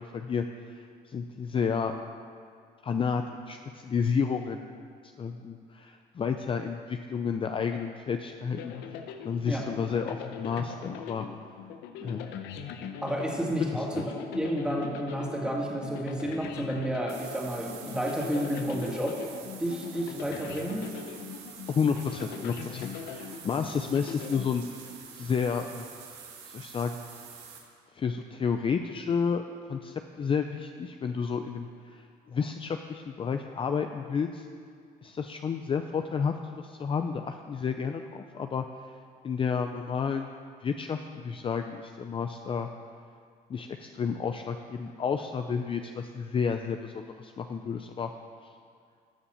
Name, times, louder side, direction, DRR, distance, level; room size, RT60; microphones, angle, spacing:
voice 1, 0.1-2.1 2.8-4.6 5.2-11.3 12.0-12.3 13.6-14.0 21.7-25.9 26.4-27.0 27.9-29.4 29.7-34.5 35.0-38.6 39.2-40.3 40.6-42.7 43.5-48.1, left 6 dB, 30° left, 6 dB, 0.5 m, -31 dB
sound 1, 8.6-25.1, left 7 dB, 90° left, 0.8 m, -42 dB
voice 2, 13.0-14.0 14.3-19.2 19.6-20.9, equal, 5° right, -2 dB, 2.4 m, -31 dB
sound 2, 17.1-27.6, right 6 dB, 90° right, 1.9 m, -47 dB
12.5 x 7.1 x 7.1 m, 2.2 s
cardioid pair, 110°, 17 cm